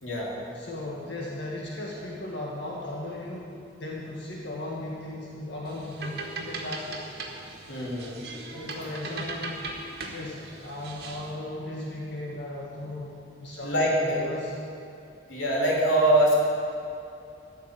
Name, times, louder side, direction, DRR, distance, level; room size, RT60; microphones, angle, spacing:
voice 1, 0.0-0.4 7.7-8.2 13.6-14.2 15.3-16.4, right 1 dB, 80° left, -4 dB, 3.3 m, -23 dB
voice 2, 0.5-7.0 8.5-9.6 10.1-14.5, left 1 dB, 65° left, -3 dB, 1.7 m, -36 dB
sound 1, 5.7-11.3, right 3 dB, 55° right, 1.8 m, -39 dB
14.0 x 7.0 x 9.0 m, 2.7 s
head